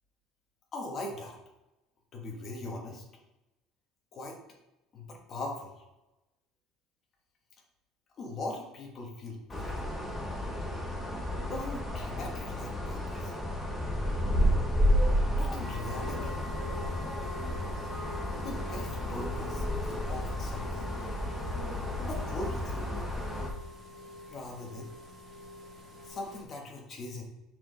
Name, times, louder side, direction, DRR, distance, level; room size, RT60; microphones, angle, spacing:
voice 1, 0.7-1.3 2.1-3.0 4.1-4.4 4.9-5.7 8.2-9.9 11.5-13.3 15.2-16.4 18.3-20.9 22.0-22.9 24.3-24.9 26.0-27.2, left 2 dB, 30° left, 0 dB, 1.3 m, -40 dB
sound 1, 9.5-23.5, equal, 5° left, 1.0 m, -31 dB
sound 2, 15.6-26.4, left 2 dB, 25° right, 1.2 m, -45 dB
6.0 x 4.7 x 3.9 m, 0.98 s
cardioid pair, 170°, 0 cm